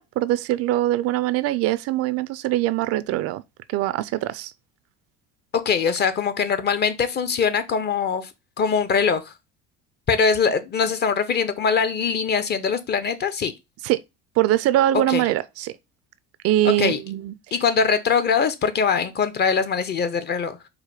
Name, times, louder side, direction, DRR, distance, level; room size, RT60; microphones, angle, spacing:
voice 1, 0.0-3.4 3.7-4.5 13.8-14.0 14.4-15.7 16.4-17.3, right 14 dB, 55° right, 0.4 m, -22 dB
voice 2, 5.5-8.3 8.6-9.3 10.1-13.5 15.1-15.3 16.6-17.0 17.5-20.6, left 6 dB, 35° left, 0.8 m, -22 dB
4.8 x 2.2 x 4.7 m
supercardioid pair, 85°, 29 cm